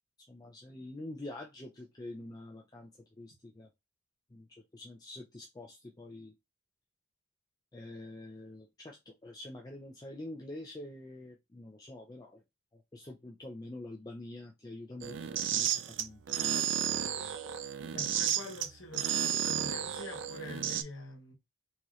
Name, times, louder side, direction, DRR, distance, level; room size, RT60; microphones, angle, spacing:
voice 1, 0.3-2.9 3.2-3.7 4.3-6.3 7.7-12.4 12.7-16.7, left 1 dB, 20° left, 0.4 m, -46 dB
sound 1, 15.0-20.8, right 9 dB, 60° right, 0.4 m, -32 dB
voice 2, 17.9-21.3, left 2 dB, 75° left, 1.0 m, -45 dB
4.1 x 3.0 x 2.4 m
head